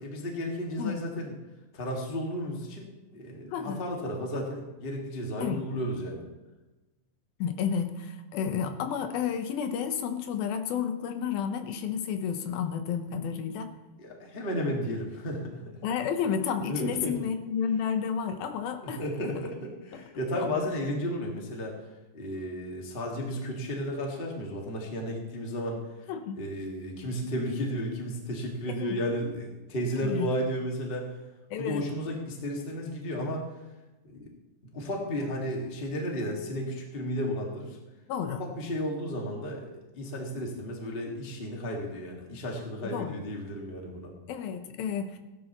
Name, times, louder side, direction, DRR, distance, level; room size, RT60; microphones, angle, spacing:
voice 1, 0.0-1.3 1.7-2.9 3.1-6.3 14.0-15.6 16.7-17.1 18.8-21.8 22.1-25.8 26.3-31.1 31.6-33.5 34.0-34.3 34.6-37.8 38.4-39.7 39.9-44.1, equal, 25° left, 0 dB, 1.3 m, -33 dB
voice 2, 3.5-3.8 5.4-5.6 7.4-13.7 15.8-19.0 19.9-20.0 20.4-20.5 26.1-26.4 28.7-29.0 30.0-30.3 31.5-31.9 38.1-38.4 42.9-43.2 44.3-45.2, left 7 dB, 90° left, 7 dB, 2.8 m, -31 dB
17.0 x 11.5 x 3.0 m, 1.1 s
omnidirectional pair, 4.1 m